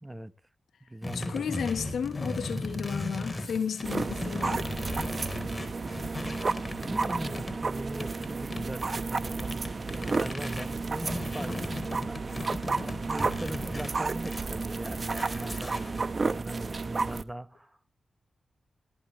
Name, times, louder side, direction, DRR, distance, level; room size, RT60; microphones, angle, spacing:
voice 1, 0.0-0.3 0.9-1.7 6.2-6.4 6.8-12.5 12.8-18.0, right 1 dB, 10° right, 1.1 m, -40 dB
sound 1, 1.0-7.6 8.0-16.3, left 2 dB, 25° left, 4.1 m, -37 dB
voice 2, 1.1-4.7, left 7 dB, 80° left, 1.4 m, -33 dB
sound 2, 3.8-17.2, right 4 dB, 50° right, 1.0 m, -32 dB
18.0 x 13.5 x 3.2 m
cardioid pair, 50°, 0 cm